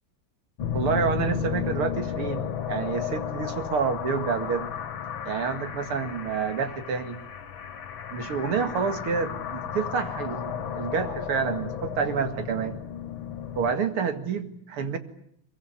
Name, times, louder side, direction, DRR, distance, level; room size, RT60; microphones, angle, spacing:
sound 1, 0.6-13.7, left 9 dB, 65° left, 2.2 m, -33 dB
voice 1, 0.7-4.7 5.2-7.2 8.1-12.8 13.6-15.0, right 6 dB, 90° right, 8 dB, 2.9 m, -28 dB
23.0 x 22.5 x 9.8 m, 0.69 s
omnidirectional pair, 2.3 m